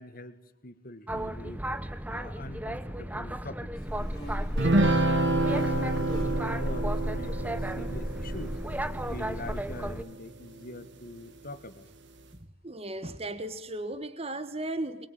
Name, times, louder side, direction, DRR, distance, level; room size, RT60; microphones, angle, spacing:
voice 1, 0.0-1.6 2.1-3.7 4.0-5.2 5.7-8.6 9.0-11.9, left 1 dB, 40° left, 1.9 m, -44 dB
Boat Water vehicle, 1.1-10.0, right 1 dB, 10° right, 1.0 m, -36 dB
Buzz, 3.8-9.9, equal, 20° left, 4.4 m, -35 dB
sound 1, 4.6-10.2, right 2 dB, 55° right, 1.9 m, -28 dB
voice 2, 12.3-15.1, right 1 dB, 30° right, 1.6 m, -36 dB
24.5 x 23.0 x 9.1 m
head